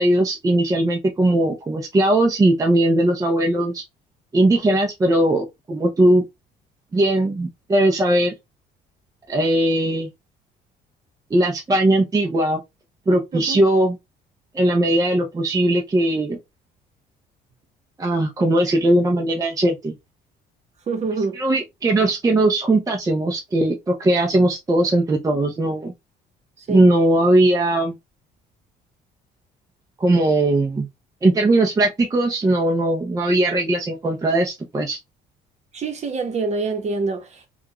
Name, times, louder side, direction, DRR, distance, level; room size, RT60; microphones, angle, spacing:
voice 1, 0.0-3.8 4.3-6.2 6.9-8.3 9.3-10.1 11.3-12.6 13.1-14.0 14.5-16.4 18.0-19.9 21.4-25.9 26.7-28.0 30.0-30.9 31.2-35.0, right 1 dB, 20° right, 0.7 m, -19 dB
voice 2, 20.9-21.4 26.6-26.8 35.7-37.4, right 4 dB, 40° right, 1.1 m, -26 dB
3.5 x 2.4 x 2.9 m
cardioid pair, 110°, 17 cm